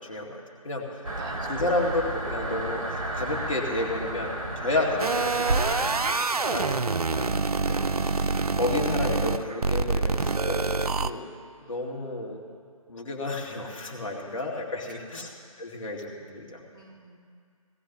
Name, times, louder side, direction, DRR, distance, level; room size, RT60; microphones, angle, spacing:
voice 1, 0.0-1.0 1.4-5.9 6.4-6.7 7.1-11.3 11.6-12.4 12.9-15.3 15.6-16.6, left 2 dB, 60° left, -1 dB, 2.4 m, -31 dB
sound 1, 1.0-6.0, right 1 dB, 60° right, 1.9 m, -33 dB
voice 2, 1.1-1.7 6.4-6.6 14.9-15.3 16.7-17.2, right 3 dB, 35° right, 0 dB, 1.5 m, -47 dB
sound 2, 5.0-11.1, right 4 dB, 85° right, 0.5 m, -26 dB
18.0 x 15.0 x 3.1 m, 2.2 s
figure-of-eight pair, 150°, 19 cm